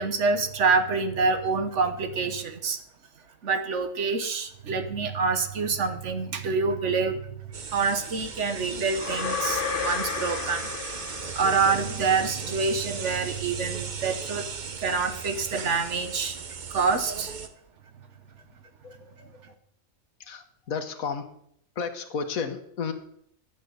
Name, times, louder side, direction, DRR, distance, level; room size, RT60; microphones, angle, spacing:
voice 1, 0.0-2.8 3.4-7.2 7.7-10.7 11.3-14.5 14.8-16.4 16.7-17.3, right 4 dB, 60° right, 9 dB, 1.3 m, -26 dB
sound 1, 7.5-17.5, right 5 dB, 40° right, 0.8 m, -37 dB
sound 2, 9.0-12.1, left 6 dB, 45° left, 1.0 m, -32 dB
voice 2, 18.8-19.4 20.3-21.2 21.8-22.9, left 5 dB, 80° left, 8 dB, 1.6 m, -33 dB
11.0 x 8.3 x 6.5 m, 0.72 s
omnidirectional pair, 1.4 m